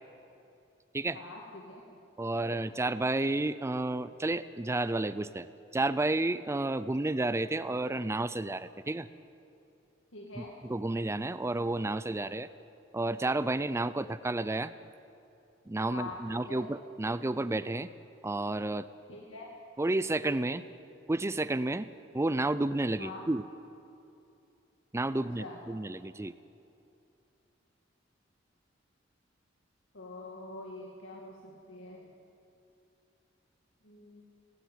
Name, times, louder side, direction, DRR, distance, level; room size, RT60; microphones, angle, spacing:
voice 1, 1.1-1.8 2.4-2.6 10.1-10.5 15.9-16.2 16.5-16.6 19.1-19.5 23.0-23.2 25.4-25.6 29.9-32.0 33.8-34.2, left 2 dB, 75° left, -1 dB, 2.2 m, -45 dB
voice 2, 2.2-5.5 5.7-9.1 10.4-12.5 12.9-14.7 15.7-17.9 18.2-18.9 19.8-20.6 21.1-21.9 22.1-23.4 24.9-26.3, right 2 dB, 15° right, 15 dB, 0.4 m, -31 dB
17.5 x 17.5 x 9.3 m, 2.7 s
head